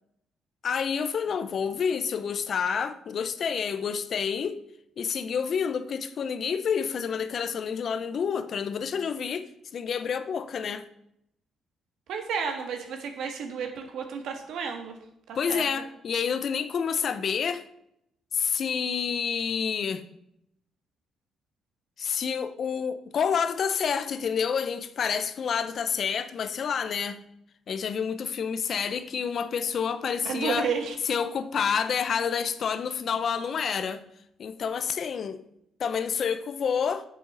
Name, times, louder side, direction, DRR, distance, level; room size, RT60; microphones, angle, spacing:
voice 1, 0.6-4.6 5.0-10.9 15.3-17.6 18.3-20.0 22.0-27.2 27.7-30.7 31.1-34.0 34.4-35.4 35.8-37.0, left 6 dB, 55° left, 0.7 m, -28 dB
voice 2, 12.1-15.0 15.3-15.6 30.2-31.0, right 6 dB, 80° right, 1.6 m, -32 dB
7.5 x 6.6 x 5.5 m
cardioid pair, 90°, 0 cm